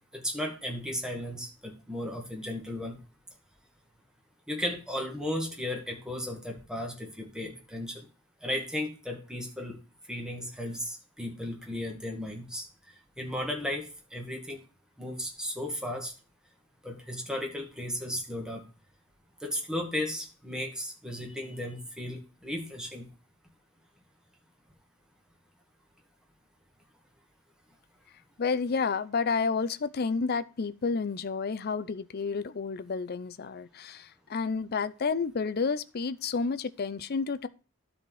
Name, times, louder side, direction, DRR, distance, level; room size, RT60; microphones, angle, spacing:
voice 1, 0.1-3.0 4.5-8.1 8.4-9.8 10.1-12.7 13.2-14.6 15.0-16.1 16.8-18.6 19.4-23.1, left 1 dB, 5° right, 2.1 m, -35 dB
voice 2, 28.4-37.5, left 5 dB, 50° left, 0.5 m, -30 dB
12.0 x 4.3 x 4.7 m
head